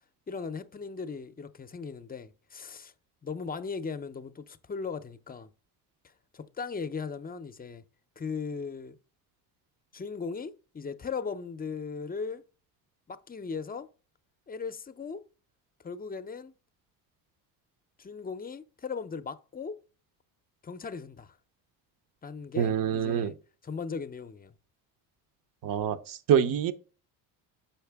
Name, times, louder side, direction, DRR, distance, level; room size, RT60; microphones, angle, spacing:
voice 1, 0.3-2.9 3.2-5.5 6.3-7.8 8.2-8.9 9.9-12.4 13.1-13.9 14.5-15.2 15.8-16.5 18.0-19.8 20.6-21.3 22.2-23.4 23.6-24.5, left 5 dB, 20° left, 0.6 m, -38 dB
voice 2, 22.6-23.3 25.6-26.7, right 9 dB, 55° right, 0.8 m, -26 dB
6.4 x 5.8 x 3.5 m
supercardioid pair, 85°, 40 cm